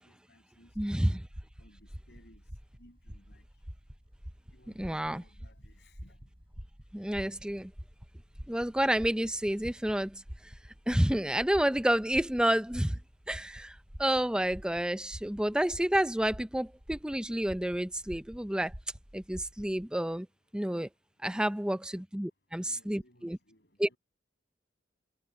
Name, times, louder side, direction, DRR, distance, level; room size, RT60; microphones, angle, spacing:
voice 1, 0.0-1.2 1.6-2.4 2.8-3.4 4.5-6.3 21.3-21.6 21.9-22.0 22.6-24.0, left 1 dB, 65° left, 7.4 m, -62 dB
sound 1, 0.7-19.9, equal, 30° right, 6.5 m, -48 dB
voice 2, 0.8-1.2 4.8-5.2 6.9-7.7 8.5-10.5 10.9-13.0 13.3-18.7 19.1-20.3 20.5-20.9 21.2-23.4 23.8-23.9, right 1 dB, 5° right, 0.5 m, -30 dB
head